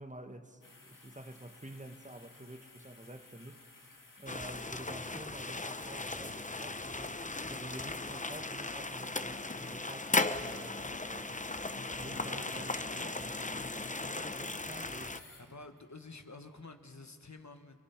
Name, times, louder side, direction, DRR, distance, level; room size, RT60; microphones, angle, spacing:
voice 1, 0.0-3.9 4.2-13.3 14.0-15.3, right 1 dB, 25° right, 1.2 m, -49 dB
sound 1, 0.6-15.9 16.4-16.5, left 3 dB, 75° left, 2.2 m, -58 dB
sound 2, 4.3-15.2, left 2 dB, 25° left, 0.7 m, -37 dB
voice 2, 12.0-13.4 15.4-17.8, left 3 dB, 55° left, 1.3 m, -50 dB
27.0 x 22.0 x 5.8 m
wide cardioid pair, 50°, 33 cm